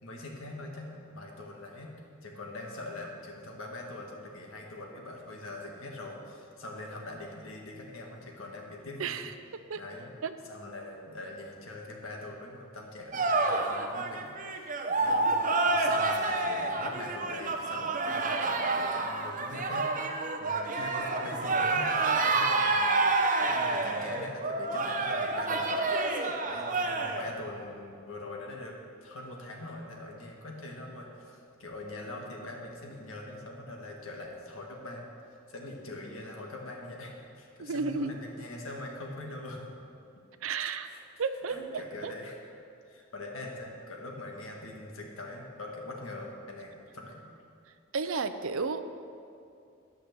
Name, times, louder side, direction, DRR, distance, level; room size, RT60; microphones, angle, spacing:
voice 1, 0.0-1.9 2.2-9.3 9.7-10.1 10.4-14.7 15.0-15.3 15.6-23.1 23.4-28.7 29.0-35.1 35.5-39.7 40.8-41.0 41.5-42.4 42.8-47.2, left 2 dB, 80° left, 0 dB, 1.6 m, -43 dB
voice 2, 9.0-9.3 9.7-9.8 10.2-10.3 37.6-38.1 40.4-40.9 41.2-42.1 47.9-48.8, right 4 dB, 75° right, 10 dB, 0.5 m, -32 dB
sound 1, 13.1-27.3, right 3 dB, 40° right, 0.8 m, -28 dB
10.5 x 5.8 x 6.8 m, 2.5 s
head